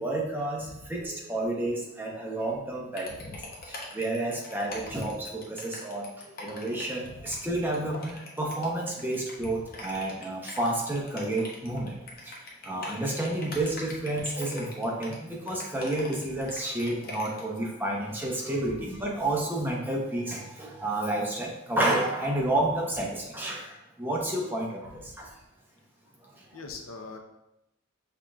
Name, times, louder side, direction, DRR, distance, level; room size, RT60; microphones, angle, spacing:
voice 1, 0.0-12.0 12.2-25.3 26.2-26.4, right 1 dB, 10° right, -2 dB, 0.6 m, -30 dB
sound 1, 2.9-17.6, left 2 dB, 45° left, 0.8 m, -43 dB
voice 2, 3.1-3.7 4.7-5.1 7.0-7.4 9.4-9.6 11.7-11.8 18.6-18.8 24.8-25.2 26.5-27.2, left 3 dB, 80° left, 4 dB, 0.6 m, -45 dB
5.7 x 3.6 x 2.3 m, 0.88 s
head